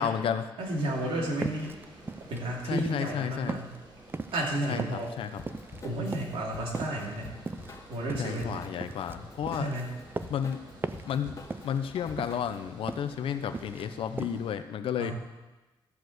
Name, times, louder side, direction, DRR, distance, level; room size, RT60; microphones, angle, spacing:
voice 1, 0.0-0.5 2.6-3.6 4.7-5.4 8.1-9.7 10.3-10.6 11.1-15.1, left 8 dB, 80° left, 9 dB, 0.7 m, -32 dB
Water, 0.6-14.5, right 1 dB, 45° right, 4.5 m, -52 dB
voice 2, 0.6-1.7 2.3-3.8 4.3-5.1 5.8-7.3 7.9-8.6 9.5-9.9 15.0-15.1, right 1 dB, 80° right, -3 dB, 2.8 m, -32 dB
sound 1, 1.4-3.2 3.5-5.8 6.1-6.5 6.7-9.1 9.5-10.5 10.8-11.2 11.4-11.9 12.2-13.1 13.4-13.9 14.2-14.4, right 3 dB, 25° right, 0.5 m, -38 dB
Drum kit / Drum, 5.4-12.7, left 2 dB, 35° left, 1.7 m, -47 dB
13.5 x 4.9 x 7.9 m, 1.1 s
cardioid pair, 85°, 9 cm